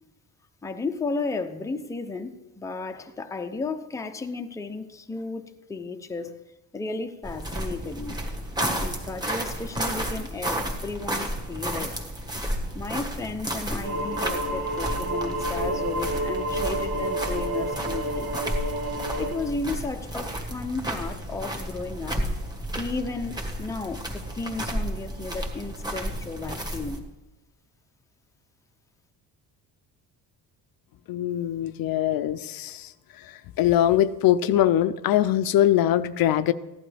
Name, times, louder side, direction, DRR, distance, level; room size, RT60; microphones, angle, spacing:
voice 1, 0.6-6.4 6.7-8.3 8.8-12.1 12.7-18.3 19.2-22.2 22.8-27.1, left 3 dB, 10° left, 6 dB, 0.6 m, -34 dB
sound 1, 7.2-27.0, right 1 dB, 10° right, 1.5 m, -32 dB
sound 2, 13.8-19.4, right 1 dB, 90° right, 2.8 m, -29 dB
voice 2, 31.1-36.5, left 12 dB, 60° left, 13 dB, 0.5 m, -22 dB
15.5 x 11.0 x 3.4 m, 1.1 s
cardioid pair, 145°, 40 cm